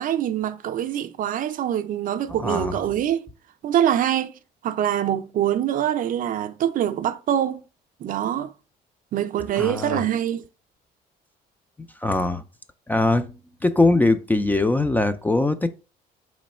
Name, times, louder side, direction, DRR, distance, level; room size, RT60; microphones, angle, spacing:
voice 1, 0.0-3.3 3.6-4.3 4.6-7.6 8.0-8.5 9.1-10.4, right 10 dB, 55° right, 0.4 m, -24 dB
voice 2, 2.4-2.8 9.6-10.0 12.0-12.4 12.9-13.3 13.6-15.7, left 2 dB, 10° left, 0.3 m, -21 dB
4.0 x 3.1 x 4.2 m
cardioid pair, 110°, 17 cm